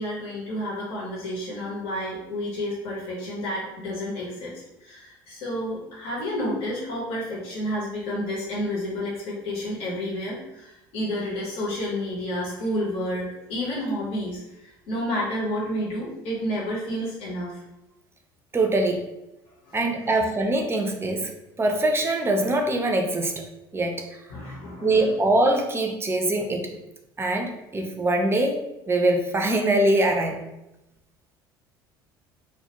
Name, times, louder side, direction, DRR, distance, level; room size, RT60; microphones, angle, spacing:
voice 1, 0.0-17.6 19.7-19.8 20.1-20.2 24.3-25.1, equal, 60° left, -5 dB, 0.9 m, -30 dB
voice 2, 18.5-19.1 19.7-21.3 21.6-23.4 23.7-24.0 24.8-26.7 27.2-28.6 28.9-30.4, right 2 dB, 20° right, 3 dB, 0.5 m, -23 dB
2.3 x 2.2 x 2.8 m, 0.91 s
hypercardioid pair, 65°, 12 cm